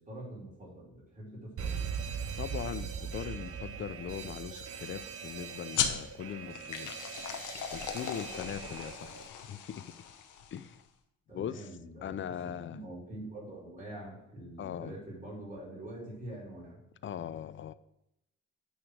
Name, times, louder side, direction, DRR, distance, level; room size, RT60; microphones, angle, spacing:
voice 1, 0.0-1.9 11.3-16.8, right 1 dB, 25° right, -5 dB, 3.2 m, -45 dB
Alarm, 1.6-9.3, right 7 dB, 50° right, 0.7 m, -40 dB
voice 2, 2.4-6.9 7.7-10.0 10.5-10.8 11.3-11.7 12.0-12.8 14.6-15.0 17.0-17.7, left 9 dB, 40° left, 14 dB, 0.4 m, -40 dB
sound 1, 5.7-10.8, left 8 dB, 80° left, 0.9 m, -37 dB
9.1 x 3.2 x 6.3 m, 0.83 s
cardioid pair, 90°, 30 cm